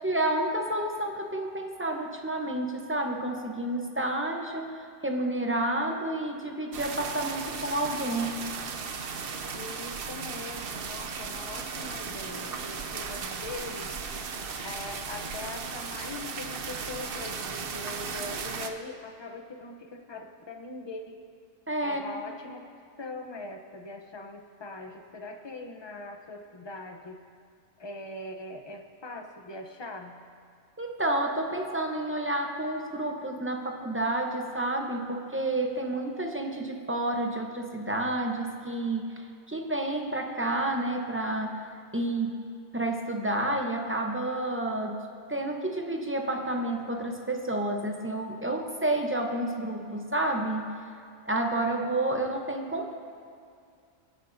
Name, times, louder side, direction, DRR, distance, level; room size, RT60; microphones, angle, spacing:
voice 1, 0.0-8.4 21.7-22.2 30.8-41.6 41.9-42.4 42.7-45.0 45.3-50.7 51.3-52.9, right 1 dB, 10° right, 2 dB, 0.9 m, -30 dB
sound 1, 6.7-18.7, right 5 dB, 60° right, 0.9 m, -36 dB
voice 2, 9.5-14.0 14.6-21.2 21.8-22.7 23.0-27.2 27.8-30.2 51.6-52.0, left 2 dB, 25° left, 4 dB, 0.8 m, -41 dB
23.5 x 9.5 x 2.7 m, 2.4 s
omnidirectional pair, 1.1 m